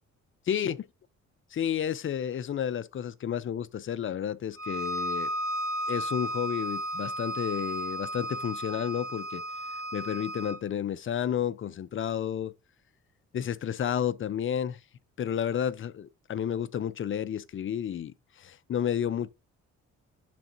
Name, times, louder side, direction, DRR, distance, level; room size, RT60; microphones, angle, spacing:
voice 1, 0.5-0.8 1.5-5.3 5.9-9.4 9.9-12.5 13.3-14.8 15.2-19.3, left 9 dB, 40° left, 0.6 m, -31 dB
Bowed string instrument, 4.6-10.6, equal, 45° right, 2.2 m, -34 dB
12.0 x 4.0 x 2.6 m
cardioid pair, 90°, 30 cm